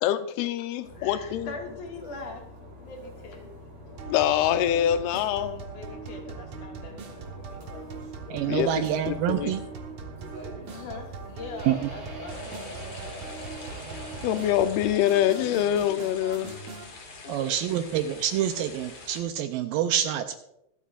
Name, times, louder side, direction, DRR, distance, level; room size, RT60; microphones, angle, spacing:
voice 1, 0.0-1.5 4.1-5.7 8.5-8.7 9.1-9.5 14.2-16.5, left 11 dB, 85° left, 10 dB, 2.6 m, -25 dB
sound 1, 0.8-14.6, equal, 45° right, 5.3 m, -44 dB
voice 2, 0.9-2.4 2.8-3.5 5.7-7.6 10.7-13.2 17.2-17.7, left 3 dB, 60° left, 0 dB, 3.2 m, -42 dB
sound 2, 4.0-16.9, right 5 dB, 60° right, 2.0 m, -41 dB
voice 3, 8.3-9.6 11.6-11.8 17.3-20.4, right 10 dB, 80° right, 8 dB, 2.1 m, -27 dB
sound 3, 12.3-19.2, left 3 dB, 45° left, 2.4 m, -45 dB
25.0 x 8.4 x 2.5 m, 0.82 s
omnidirectional pair, 4.4 m